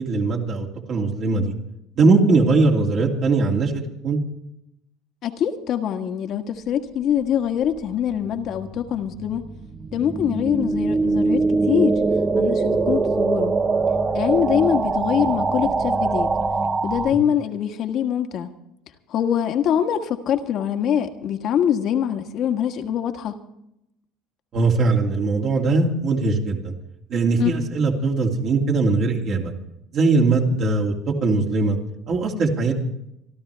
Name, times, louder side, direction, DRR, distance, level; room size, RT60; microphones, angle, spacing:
voice 1, 0.0-1.5 2.0-4.2 24.5-26.7 27.1-29.5 29.9-31.8 32.1-32.7, right 3 dB, 45° right, 0 dB, 2.6 m, -20 dB
voice 2, 5.2-9.5 9.9-12.0 12.3-13.5 14.1-16.3 16.8-18.5 19.1-23.3 27.4-27.5, left 9 dB, 50° left, 6 dB, 1.6 m, -23 dB
sound 1, 7.8-17.1, right 3 dB, 25° right, 1.1 m, -22 dB
27.0 x 12.0 x 3.4 m, 0.83 s
cardioid pair, 120°, 0 cm